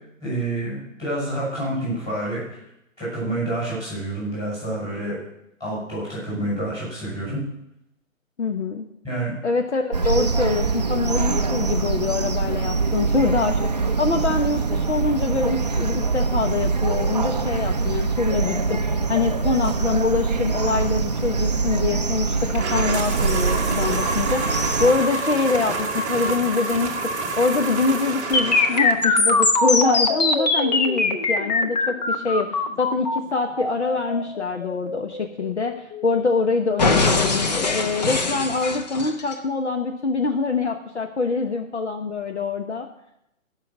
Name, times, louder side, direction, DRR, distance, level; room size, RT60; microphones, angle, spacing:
voice 1, 0.2-2.6 3.0-5.2 5.6-7.4 9.0-9.3, right 1 dB, 10° left, -7 dB, 6.1 m, -28 dB
voice 2, 8.4-8.9 9.4-27.0 27.4-42.9, left 4 dB, 55° left, 5 dB, 1.1 m, -24 dB
sound 1, 9.9-24.9, right 4 dB, 30° right, 0.5 m, -24 dB
sound 2, 22.5-29.1, right 3 dB, 10° right, 1.1 m, -28 dB
sound 3, 28.3-36.3 36.8-39.3, left 3 dB, 30° left, 0.9 m, -22 dB
16.0 x 5.9 x 7.2 m, 0.81 s
figure-of-eight pair, 140°, 40 cm